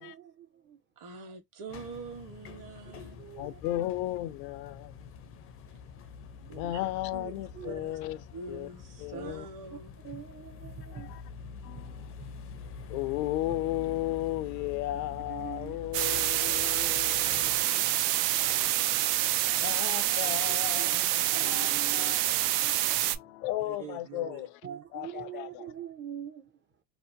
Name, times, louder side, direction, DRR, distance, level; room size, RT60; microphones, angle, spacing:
voice 1, 0.0-0.8 3.2-3.6 6.4-6.7 7.2-7.8 9.1-9.3 9.7-9.8 10.0-12.3 12.6-12.8 15.3-15.8 17.3-17.6 20.5-20.9 21.3-23.2 24.6-26.6, right 8 dB, 25° right, 0.5 m, -45 dB
voice 2, 1.0-3.2 6.5-6.8 7.1-8.0 8.3-9.9 19.5-19.6 20.2-20.4 20.8-21.0 23.6-24.8, right 4 dB, 40° right, 1.1 m, -45 dB
sound 1, 1.7-17.7, left 5 dB, 30° left, 0.4 m, -46 dB
voice 3, 3.4-5.1 6.5-8.2 8.5-8.7 9.0-9.5 10.9-11.2 11.6-12.1 12.9-24.5 24.9-25.7, left 15 dB, 85° left, 0.6 m, -35 dB
sound 2, 15.9-23.2, right 14 dB, 75° right, 0.5 m, -27 dB
2.7 x 2.0 x 2.6 m
supercardioid pair, 100°, 49 cm